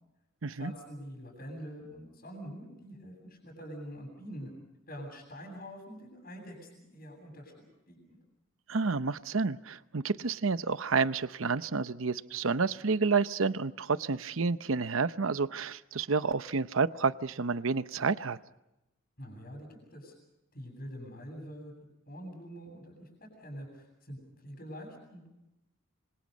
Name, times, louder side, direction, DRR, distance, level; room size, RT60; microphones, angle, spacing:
voice 1, 0.5-4.5 4.9-8.2 19.2-20.1 20.5-21.7 22.1-25.3, equal, 45° left, -1 dB, 7.9 m, -45 dB
voice 2, 8.7-18.4, right 4 dB, 75° right, 13 dB, 0.8 m, -30 dB
26.5 x 26.5 x 5.4 m, 0.92 s
head